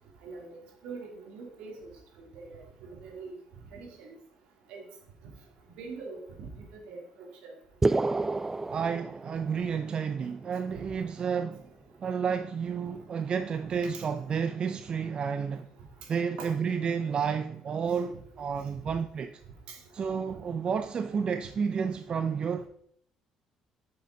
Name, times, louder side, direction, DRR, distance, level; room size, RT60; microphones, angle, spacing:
voice 1, 0.2-0.6 0.8-1.9 2.3-3.4 3.7-4.1 4.7-4.8 5.8-7.0 7.4-7.5 13.8-14.0 16.4-16.5 19.7-19.8, right 4 dB, 75° right, 3.0 m, -43 dB
sound 1, 7.8-9.8, right 3 dB, 20° right, 0.3 m, -29 dB
voice 2, 8.7-11.6 12.0-15.7 16.1-19.3 19.9-22.7, right 6 dB, 50° right, 0.6 m, -31 dB
8.2 x 6.9 x 5.1 m
supercardioid pair, 65°, 2 cm